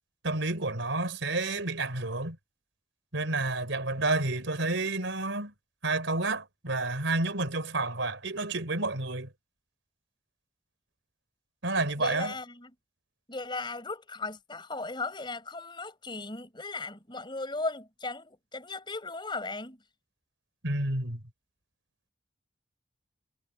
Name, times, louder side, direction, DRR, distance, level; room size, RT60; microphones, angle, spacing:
voice 1, 0.2-2.4 3.1-5.5 5.8-9.3 11.6-12.3 20.6-21.2, right 2 dB, 85° right, 4.0 m, -30 dB
voice 2, 12.0-12.7 13.3-19.8, left 3 dB, 25° left, 4.8 m, -37 dB
head